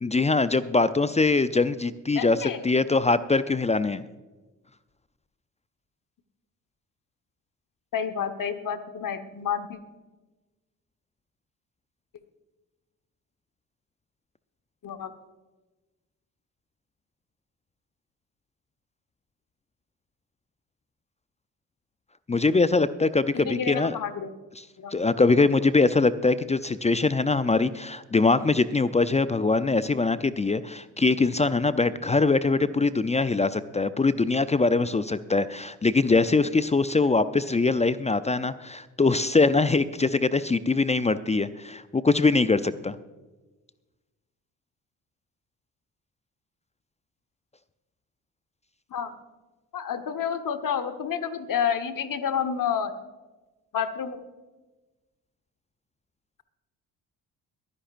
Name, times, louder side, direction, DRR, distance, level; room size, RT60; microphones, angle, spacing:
voice 1, 0.0-4.0 22.3-24.0 24.9-43.0, left 3 dB, 15° left, 14 dB, 0.5 m, -23 dB
voice 2, 2.1-2.6 7.9-9.8 14.8-15.1 23.3-24.3 24.8-24.9 48.9-49.1 49.7-52.9 53.7-54.2, left 7 dB, 45° left, 9 dB, 1.4 m, -29 dB
23.0 x 10.5 x 2.6 m, 1.2 s
hypercardioid pair, 45°, 44 cm